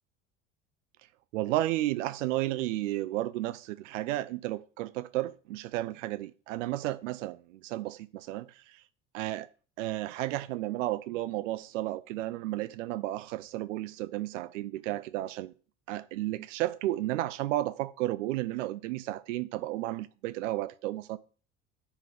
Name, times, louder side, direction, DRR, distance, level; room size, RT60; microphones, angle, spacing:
voice 1, 1.3-8.8 9.1-9.5 9.8-15.5 15.9-21.2, right 16 dB, 70° right, 0.5 m, -33 dB
10.0 x 4.5 x 5.0 m
figure-of-eight pair, 65°, 38 cm